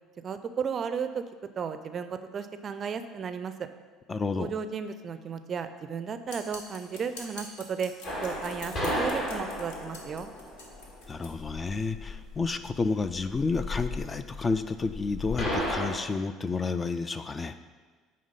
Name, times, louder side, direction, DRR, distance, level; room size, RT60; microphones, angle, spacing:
voice 1, 0.2-1.2 1.6-3.7 4.4-7.9 8.2-10.3, right 6 dB, 40° right, 10 dB, 0.4 m, -34 dB
voice 2, 4.1-4.5 11.1-17.5, left 4 dB, 25° left, 11 dB, 0.4 m, -30 dB
sound 1, 6.3-11.3, left 3 dB, 65° left, 1.0 m, -46 dB
sound 2, 8.0-15.9, left 1 dB, 50° left, 2.1 m, -34 dB
8.7 x 3.3 x 5.5 m, 1.4 s
figure-of-eight pair, 60°, 0 cm